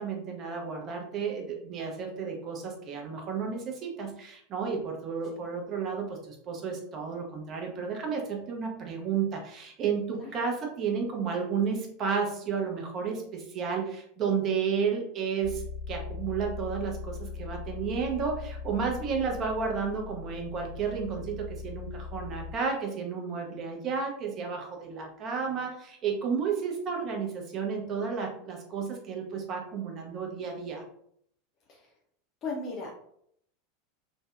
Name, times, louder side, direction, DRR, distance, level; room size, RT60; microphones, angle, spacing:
voice 1, 0.0-30.8, right 6 dB, 35° right, 1 dB, 0.6 m, -32 dB
sound 1, 15.4-22.5, left 5 dB, 85° left, 0.6 m, -40 dB
voice 2, 32.4-33.0, left 3 dB, 40° left, -2 dB, 0.5 m, -36 dB
2.6 x 2.1 x 2.3 m, 0.69 s
figure-of-eight pair, 80°, 0 cm